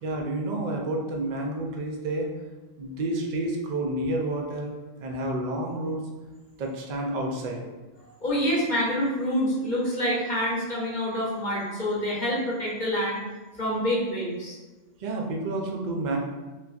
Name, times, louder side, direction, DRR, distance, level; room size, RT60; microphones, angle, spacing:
voice 1, 0.0-2.3 2.8-4.7 5.0-6.1 6.6-7.7 15.0-16.2, right 2 dB, 60° right, 1 dB, 0.5 m, -29 dB
voice 2, 8.2-13.2 13.6-14.6, equal, 45° left, -6 dB, 0.8 m, -27 dB
3.8 x 2.3 x 2.3 m, 1.2 s
omnidirectional pair, 1.3 m